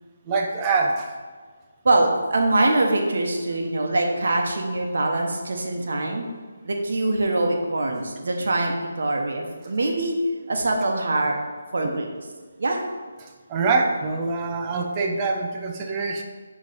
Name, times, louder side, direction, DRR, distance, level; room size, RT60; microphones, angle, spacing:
voice 1, 0.3-1.1 11.8-12.0 13.2-16.2, right 4 dB, 25° right, 1 dB, 0.6 m, -25 dB
voice 2, 1.8-6.3 6.6-10.2 10.5-11.4 11.7-12.1 12.6-12.8, right 2 dB, 65° right, 2 dB, 0.9 m, -23 dB
8.2 x 3.1 x 4.0 m, 1.5 s
figure-of-eight pair, 155°, 0 cm